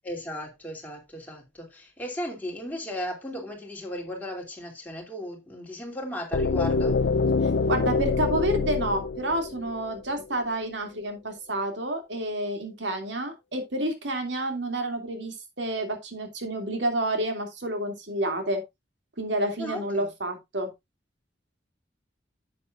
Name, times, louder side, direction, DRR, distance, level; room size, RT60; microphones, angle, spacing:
voice 1, 0.0-7.0 19.6-20.1, equal, 10° left, 2.6 m, -36 dB
sound 1, 6.3-10.2, left 4 dB, 80° left, 0.5 m, -25 dB
voice 2, 7.4-18.6 19.2-20.7, right 1 dB, 80° right, 2.5 m, -29 dB
11.0 x 7.6 x 2.4 m
head